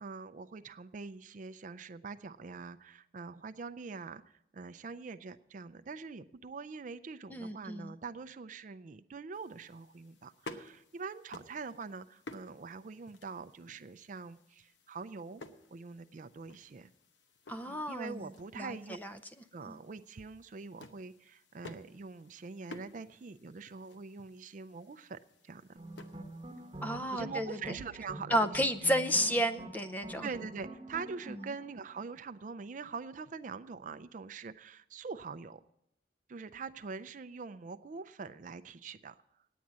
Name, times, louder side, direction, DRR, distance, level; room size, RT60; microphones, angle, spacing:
voice 1, 0.0-15.4 15.7-16.9 17.7-19.0 19.5-25.2 25.4-25.8 27.1-28.6 30.2-35.6 36.3-39.2, right 4 dB, 45° right, 11 dB, 0.4 m, -44 dB
voice 2, 7.3-7.9 17.5-18.3 18.6-18.8 19.0-19.1 19.7-19.8 26.8-27.6 28.3-30.3, equal, 10° left, 10 dB, 0.5 m, -31 dB
sound 1, 9.3-26.9, left 2 dB, 85° left, 0.9 m, -54 dB
sound 2, 25.8-32.4, right 2 dB, 30° right, 1.0 m, -47 dB
9.4 x 9.2 x 7.4 m, 0.78 s
head